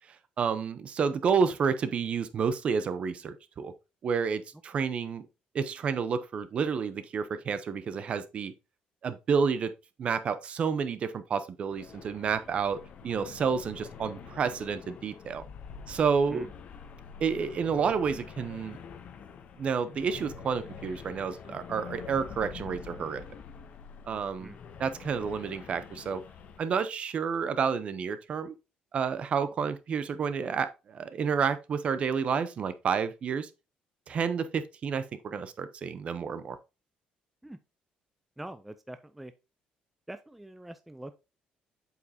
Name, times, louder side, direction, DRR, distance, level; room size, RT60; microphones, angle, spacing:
voice 1, 0.4-3.7 4.0-5.3 5.5-8.5 9.0-9.7 10.0-15.4 15.9-16.5 17.2-18.8 19.6-23.2 24.1-24.5 24.8-26.2 26.6-28.5 28.9-33.5 34.1-36.6, right 6 dB, 40° right, 0.7 m, -30 dB
sound 1, 11.7-26.6, left 6 dB, 50° left, 0.8 m, -46 dB
voice 2, 38.4-39.3 40.1-41.1, right 1 dB, 5° right, 0.4 m, -44 dB
8.0 x 4.9 x 2.8 m
cardioid pair, 135°, 3 cm